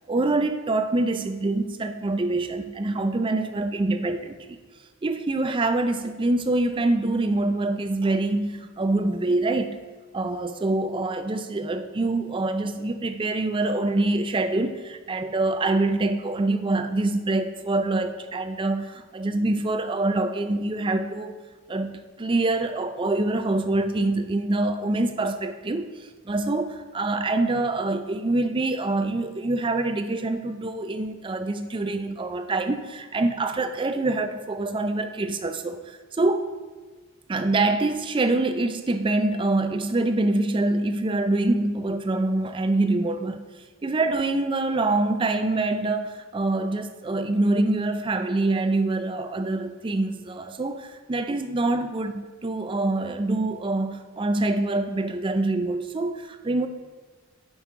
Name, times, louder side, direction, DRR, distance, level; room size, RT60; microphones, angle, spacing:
voice 1, 0.1-4.6 5.0-9.8 10.1-21.4 21.7-36.5 37.3-43.4 43.8-56.7, right 2 dB, 20° right, 8 dB, 0.4 m, -25 dB
7.2 x 5.4 x 4.8 m, 1.3 s
head